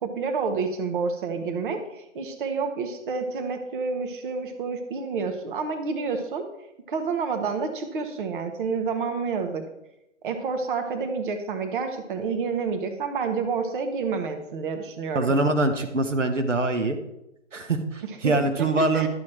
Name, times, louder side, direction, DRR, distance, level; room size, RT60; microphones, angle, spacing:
voice 1, 0.0-6.4 6.9-9.6 10.2-15.3 18.2-18.3 18.6-18.7 18.9-19.1, right 5 dB, 45° right, 6 dB, 1.4 m, -29 dB
voice 2, 15.1-17.0 17.5-19.1, right 2 dB, 80° right, 6 dB, 1.4 m, -24 dB
12.0 x 7.5 x 4.5 m, 0.87 s
figure-of-eight pair, 125°, 37 cm